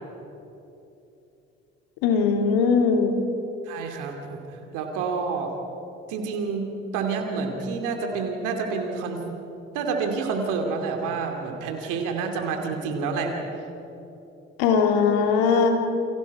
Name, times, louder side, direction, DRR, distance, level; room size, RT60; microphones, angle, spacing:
voice 1, 2.0-3.1 14.6-15.7, left 5 dB, 75° left, 4 dB, 2.5 m, -20 dB
voice 2, 3.7-4.4 4.7-5.5 6.1-9.3 9.7-13.3, right 5 dB, 70° right, 3 dB, 2.7 m, -28 dB
29.0 x 24.5 x 4.8 m, 3.0 s
hypercardioid pair, 50°, 33 cm